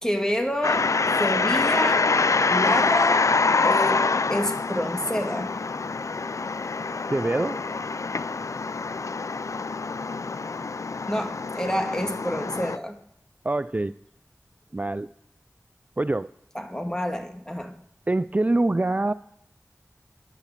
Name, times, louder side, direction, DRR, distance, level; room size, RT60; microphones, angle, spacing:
voice 1, 0.0-0.9 1.2-2.1 2.5-3.3 3.6-5.5 11.1-13.0 16.5-17.7, equal, 10° left, 5 dB, 1.9 m, -28 dB
sound 1, 0.6-12.8, left 4 dB, 65° left, 0.4 m, -25 dB
voice 2, 7.1-7.6 13.4-13.9 14.7-15.1 16.0-16.3 18.1-19.1, right 2 dB, 25° right, 14 dB, 0.4 m, -24 dB
11.0 x 9.8 x 7.2 m, 0.76 s
wide cardioid pair, 50°, 6 cm